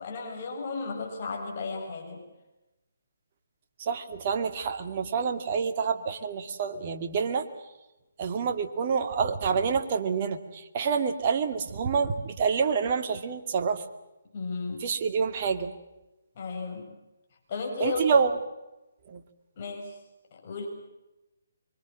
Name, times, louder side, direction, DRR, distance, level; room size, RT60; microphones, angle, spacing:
voice 1, 0.0-2.2 14.3-14.9 16.4-16.9 17.5-18.2 19.6-20.0 20.3-20.7, left 4 dB, 40° left, 1 dB, 7.5 m, -34 dB
voice 2, 3.8-7.5 8.2-13.8 14.8-15.7 17.8-18.3 19.1-19.2, right 6 dB, 40° right, 6 dB, 2.3 m, -27 dB
25.5 x 24.0 x 7.4 m, 0.99 s
figure-of-eight pair, 145°, 0 cm